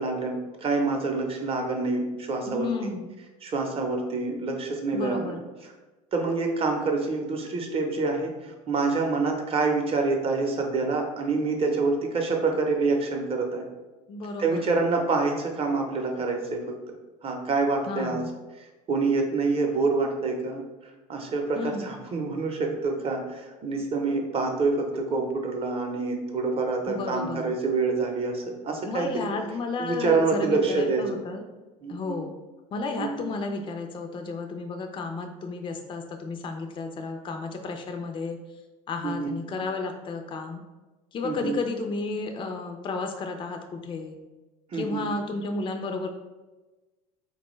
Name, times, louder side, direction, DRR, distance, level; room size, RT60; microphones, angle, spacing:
voice 1, 0.0-2.9 3.4-5.4 6.1-13.7 14.4-16.6 17.2-18.2 18.9-20.6 21.1-29.3 29.8-31.0 31.8-32.2 33.0-33.3 39.0-39.3 41.2-41.6 44.7-45.1, right 3 dB, 30° right, 2 dB, 0.7 m, -27 dB
voice 2, 2.5-3.1 4.9-5.4 14.1-14.6 17.9-18.3 21.6-21.9 26.9-27.5 28.8-31.4 31.9-32.3 32.7-38.4 38.9-40.6 41.1-44.2 44.7-46.1, left 3 dB, 30° left, 4 dB, 0.4 m, -32 dB
3.6 x 2.2 x 3.1 m, 1.2 s
supercardioid pair, 85°, 18 cm